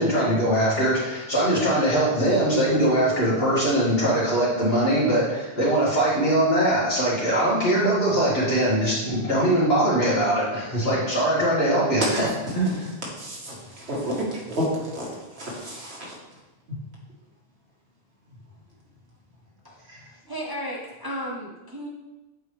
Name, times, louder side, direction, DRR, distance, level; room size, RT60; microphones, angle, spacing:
voice 1, 0.0-12.0 12.5-12.7, right 1 dB, 65° left, -8 dB, 2.7 m, -21 dB
voice 2, 12.1-16.2 16.7-16.8 19.9-20.0, equal, 80° right, -4 dB, 1.9 m, -31 dB
voice 3, 20.3-21.9, equal, 25° right, -2 dB, 0.7 m, -34 dB
7.9 x 4.6 x 3.4 m, 1.1 s
omnidirectional pair, 1.1 m